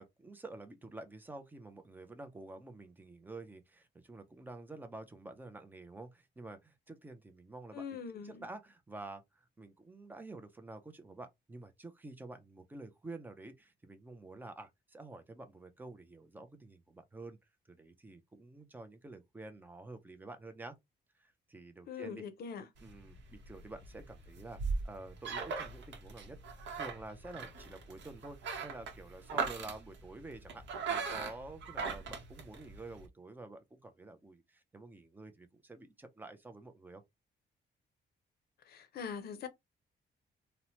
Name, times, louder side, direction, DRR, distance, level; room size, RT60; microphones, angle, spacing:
voice 1, 0.0-17.4 17.7-20.8 21.2-22.2 22.8-24.6 24.8-26.4 26.7-37.0, right 2 dB, 10° right, 0.4 m, -49 dB
voice 2, 7.7-8.4 21.9-22.7 38.7-39.5, left 6 dB, 55° left, 0.5 m, -42 dB
sound 1, 22.8-33.1, right 5 dB, 75° right, 0.8 m, -40 dB
2.7 x 2.0 x 2.9 m
wide cardioid pair, 180°, 19 cm